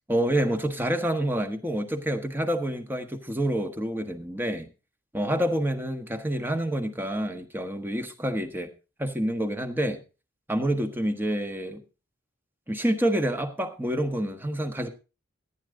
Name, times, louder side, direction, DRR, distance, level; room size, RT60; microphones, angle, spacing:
voice 1, 0.1-4.7 5.1-8.7 9.0-10.0 10.5-11.8 12.7-14.9, right 1 dB, 10° right, 1.3 m, -27 dB
15.0 x 9.6 x 3.9 m
head